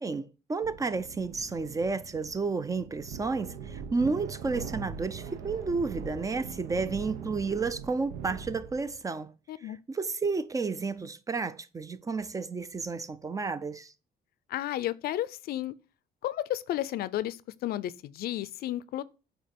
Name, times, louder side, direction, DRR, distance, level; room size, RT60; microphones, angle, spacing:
voice 1, 0.0-9.3 9.6-13.9, right 4 dB, 20° right, 0.4 m, -31 dB
sound 1, 0.6-9.0, right 6 dB, 90° right, 0.9 m, -42 dB
voice 2, 9.5-9.8 14.5-15.7 16.2-19.0, left 13 dB, 65° left, 0.5 m, -32 dB
8.6 x 2.9 x 5.2 m
cardioid pair, 110°, 17 cm